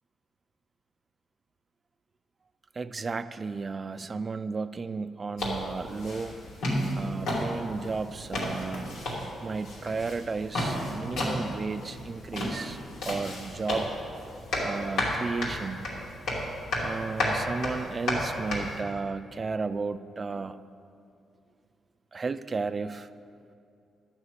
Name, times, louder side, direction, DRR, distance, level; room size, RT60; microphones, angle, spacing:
voice 1, 2.8-6.4 6.9-9.0 9.4-12.8 13.0-13.8 14.2-14.3 14.6-15.9 16.8-20.6 22.1-23.1, right 4 dB, 35° right, 13 dB, 0.4 m, -33 dB
sound 1, 5.4-18.8, left 1 dB, 85° left, 2.8 m, -33 dB
11.5 x 6.1 x 8.0 m, 2.4 s
cardioid pair, 100°, 0 cm